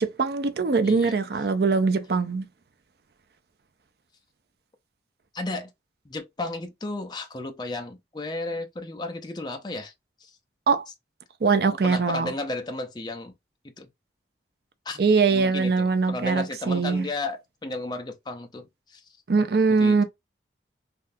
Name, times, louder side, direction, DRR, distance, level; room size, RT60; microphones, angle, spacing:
voice 1, 0.0-2.5 10.7-10.9 11.4-12.3 15.0-17.1 19.3-20.0, right 4 dB, 55° right, 0.4 m, -22 dB
voice 2, 0.8-1.2 5.3-5.7 6.1-9.9 10.2-10.3 11.8-13.3 13.8-13.9 14.9-15.0 15.3-19.0 19.8-20.0, left 2 dB, 25° left, 0.5 m, -33 dB
3.5 x 2.3 x 2.6 m
head